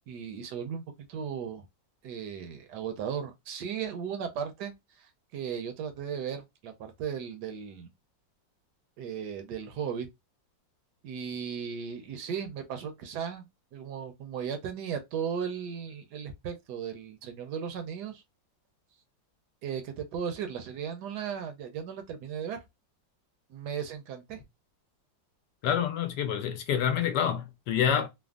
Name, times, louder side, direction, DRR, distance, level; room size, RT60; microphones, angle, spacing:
voice 1, 0.1-0.8 1.1-1.6 2.0-4.7 5.0-5.1 5.3-7.9 9.0-10.1 11.0-13.5 13.7-18.2 19.6-22.6 23.5-24.4, right 7 dB, 75° right, 1.1 m, -36 dB
voice 2, 25.6-28.1, left 8 dB, 75° left, 1.2 m, -27 dB
3.3 x 2.1 x 2.3 m
omnidirectional pair, 2.0 m